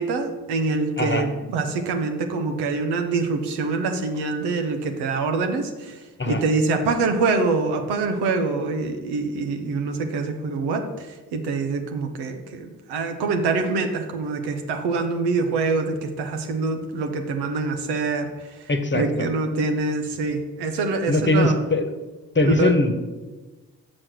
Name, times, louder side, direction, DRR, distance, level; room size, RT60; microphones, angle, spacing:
voice 1, 0.0-6.0 6.3-11.1 11.3-18.3 18.9-21.5 22.4-22.7, right 3 dB, 85° right, 5 dB, 0.9 m, -25 dB
voice 2, 1.0-1.3 6.2-6.4 18.7-19.3 21.1-21.9 22.3-23.0, left 2 dB, 30° left, 8 dB, 1.2 m, -21 dB
6.3 x 6.2 x 6.2 m, 1.2 s
supercardioid pair, 40°, 38 cm